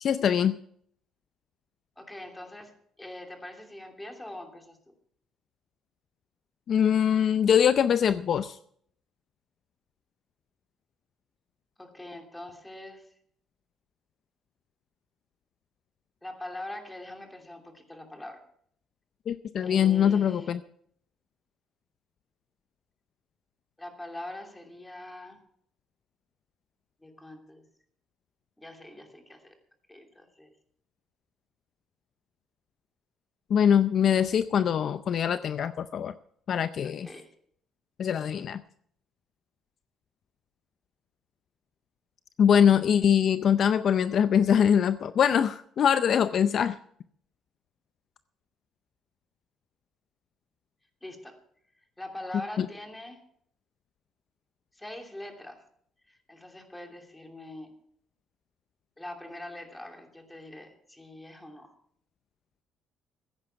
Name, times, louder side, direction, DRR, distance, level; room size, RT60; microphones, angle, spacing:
voice 1, 0.0-0.6 6.7-8.6 19.3-20.6 33.5-36.1 36.5-37.1 38.0-38.6 42.4-46.8 52.6-52.7, left 8 dB, 55° left, 12 dB, 0.5 m, -23 dB
voice 2, 2.0-4.9 11.8-13.1 16.2-18.4 19.6-20.6 23.8-25.4 27.0-27.7 28.6-29.6 29.9-30.5 36.8-37.3 51.0-51.4 52.0-53.2 54.7-55.6 56.1-57.8 59.0-61.7, left 1 dB, 10° left, 3 dB, 2.8 m, -43 dB
15.0 x 9.9 x 5.8 m, 0.65 s
cardioid pair, 100°, 0 cm